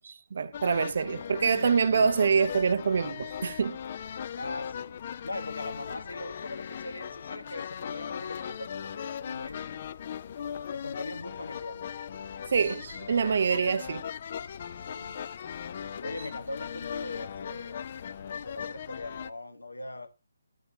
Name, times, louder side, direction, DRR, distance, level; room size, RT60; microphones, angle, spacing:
voice 1, 0.0-3.8 12.5-14.0, right 5 dB, 55° right, 0.5 m, -26 dB
sound 1, 0.5-19.3, left 8 dB, 40° left, 0.4 m, -38 dB
voice 2, 0.7-1.1 4.4-9.9 10.7-11.8 14.8-15.3 16.0-17.8 18.4-20.1, left 2 dB, 85° left, 1.2 m, -41 dB
10.5 x 8.7 x 2.7 m
figure-of-eight pair, 145°, 0 cm